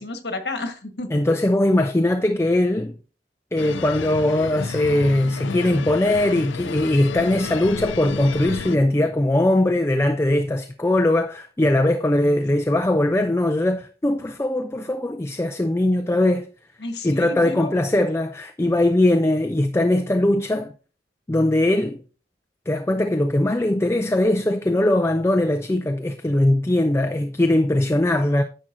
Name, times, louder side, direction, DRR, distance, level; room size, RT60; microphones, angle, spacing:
voice 1, 0.0-1.1 7.3-7.4 16.8-17.7, left 2 dB, 65° left, 1.4 m, -31 dB
voice 2, 1.1-3.0 3.5-16.5 17.0-20.7 21.3-22.0 22.7-28.4, left 1 dB, 15° left, 0.4 m, -20 dB
sound 1, 3.6-8.8, left 5 dB, 85° left, 0.5 m, -32 dB
10.0 x 7.4 x 2.6 m
head